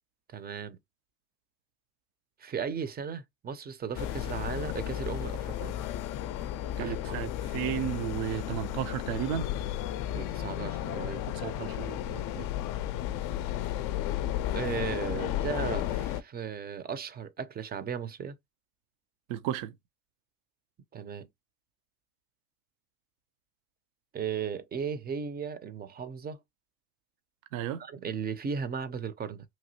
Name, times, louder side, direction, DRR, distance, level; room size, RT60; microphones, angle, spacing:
voice 1, 0.3-0.8 2.4-5.8 6.8-7.2 10.1-11.3 12.3-12.5 14.5-18.4 20.9-21.3 24.1-26.4 27.8-29.4, right 7 dB, 25° right, 0.5 m, -36 dB
sound 1, 3.9-16.2, left 12 dB, 55° left, 0.5 m, -33 dB
voice 2, 6.8-9.5 11.3-12.2 19.3-19.7 27.5-27.8, right 11 dB, 75° right, 0.6 m, -33 dB
3.0 x 2.7 x 2.7 m
hypercardioid pair, 75°, 42 cm